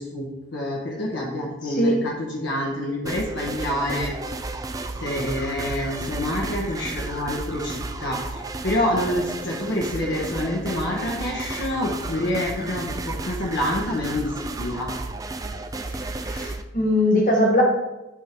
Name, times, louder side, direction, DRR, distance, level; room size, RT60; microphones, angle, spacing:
voice 1, 0.0-4.1 5.0-14.9, left 1 dB, 65° left, -3 dB, 1.2 m, -27 dB
voice 2, 1.6-2.0 15.9-17.6, left 1 dB, 40° left, -1 dB, 1.7 m, -21 dB
sound 1, 3.1-16.6, right 2 dB, 15° right, 0.4 m, -33 dB
10.5 x 3.7 x 4.6 m, 1.0 s
head